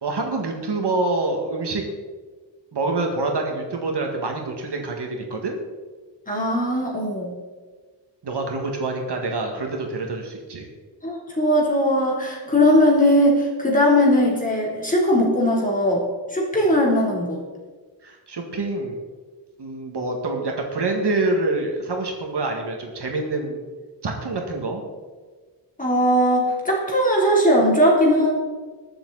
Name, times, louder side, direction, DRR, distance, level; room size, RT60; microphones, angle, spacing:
voice 1, 0.0-1.9 2.7-5.6 8.2-10.7 18.0-19.0 19.6-23.6 24.0-24.8, right 2 dB, 60° right, 2 dB, 2.0 m, -26 dB
voice 2, 6.3-7.3 11.0-16.0 16.3-17.4 25.8-28.3, equal, 20° left, -3 dB, 3.4 m, -19 dB
21.5 x 7.3 x 4.1 m, 1.4 s
wide cardioid pair, 135°, 45 cm